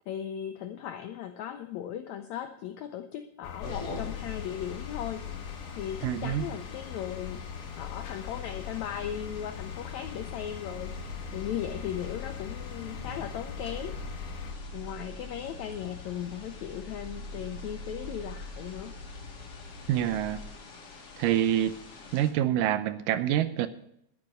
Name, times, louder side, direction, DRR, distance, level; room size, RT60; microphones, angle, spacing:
voice 1, 0.1-7.5 7.8-14.0 14.7-19.0, left 10 dB, 85° left, 8 dB, 1.6 m, -37 dB
sound 1, 3.4-14.5, left 8 dB, 65° left, 2.5 m, -42 dB
sound 2, 3.6-22.3, left 6 dB, 45° left, 2.7 m, -44 dB
voice 2, 6.0-6.5 19.9-20.4 21.2-21.7 22.1-23.7, right 11 dB, 80° right, 12 dB, 2.3 m, -26 dB
sound 3, 10.7-20.5, left 1 dB, 20° right, 3.4 m, -44 dB
10.5 x 10.5 x 6.3 m, 0.74 s
omnidirectional pair, 4.0 m